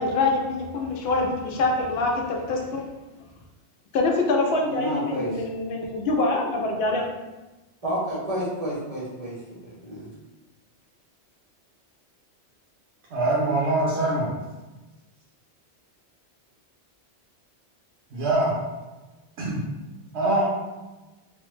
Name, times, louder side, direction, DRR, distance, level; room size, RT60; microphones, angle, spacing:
voice 1, 0.0-2.8 3.9-7.0, left 2 dB, 65° left, 1 dB, 0.8 m, -25 dB
voice 2, 4.6-5.5 7.8-10.1, equal, 40° right, -6 dB, 0.7 m, -30 dB
voice 3, 13.1-14.3 18.1-18.6 19.4-19.6 20.1-20.5, right 2 dB, 70° right, -7 dB, 0.9 m, -23 dB
3.1 x 2.0 x 3.1 m, 1.1 s
omnidirectional pair, 1.2 m